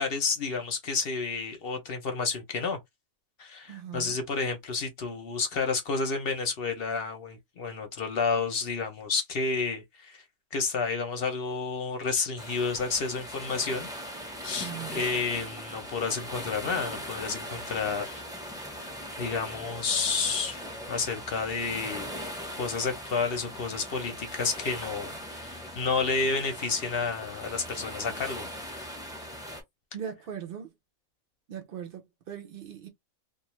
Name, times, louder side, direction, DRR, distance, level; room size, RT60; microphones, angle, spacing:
voice 1, 0.0-2.8 3.4-10.2 10.5-13.9 14.4-18.2 19.2-20.6 20.9-22.1 22.5-28.5, left 4 dB, 55° left, 0.7 m, -30 dB
voice 2, 3.7-4.2 14.6-15.0 29.9-30.7 31.5-32.9, right 8 dB, 60° right, 0.6 m, -39 dB
sound 1, 12.4-29.6, equal, 5° right, 0.5 m, -40 dB
2.4 x 2.3 x 3.0 m
omnidirectional pair, 1.5 m